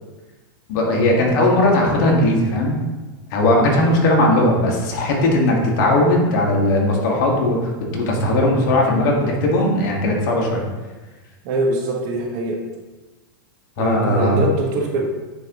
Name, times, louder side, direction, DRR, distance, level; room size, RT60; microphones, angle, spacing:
voice 1, 0.7-2.8 3.3-10.6 13.8-14.4, left 1 dB, 55° left, -1 dB, 1.6 m, -18 dB
voice 2, 11.4-12.6 13.8-15.0, right 2 dB, 50° right, 1 dB, 1.2 m, -22 dB
9.3 x 3.6 x 3.0 m, 1.2 s
supercardioid pair, 140°, 12 cm